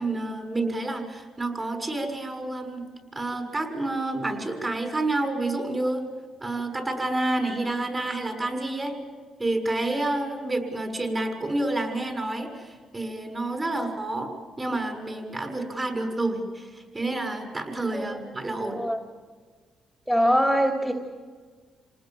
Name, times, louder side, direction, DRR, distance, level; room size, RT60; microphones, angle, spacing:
voice 1, 0.0-2.8 3.1-6.0 6.4-9.0 9.4-14.3 14.6-18.8, right 2 dB, 25° right, 4 dB, 6.5 m, -29 dB
voice 2, 20.1-20.9, equal, 5° right, 2 dB, 2.7 m, -22 dB
28.5 x 19.5 x 7.5 m, 1.5 s
cardioid pair, 90°, 0 cm